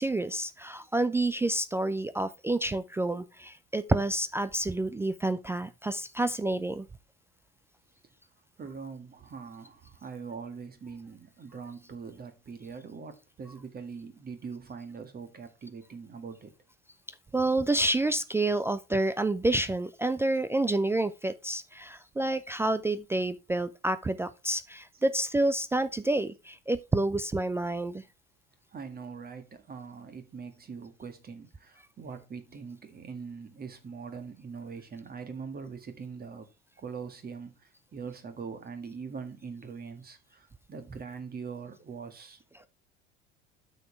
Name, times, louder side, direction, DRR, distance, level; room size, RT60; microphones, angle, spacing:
voice 1, 0.0-6.9 17.3-28.0, right 2 dB, 10° right, 0.3 m, -29 dB
voice 2, 8.6-16.5 28.7-36.5 36.8-42.7, right 5 dB, 25° right, 1.8 m, -42 dB
9.0 x 6.8 x 3.4 m
figure-of-eight pair, 65°, 34 cm